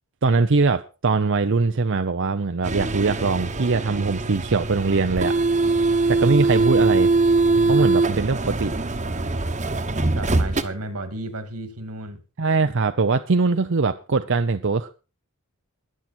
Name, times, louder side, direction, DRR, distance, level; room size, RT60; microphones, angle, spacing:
voice 1, 0.2-5.3 6.1-7.1 7.7-8.8 12.4-14.9, right 4 dB, 55° right, 0.6 m, -21 dB
sound 1, 2.6-10.6, right 3 dB, 35° right, 1.2 m, -22 dB
voice 2, 7.5-8.2 10.1-12.2, right 1 dB, 90° right, 2.4 m, -34 dB
22.0 x 7.7 x 4.4 m
head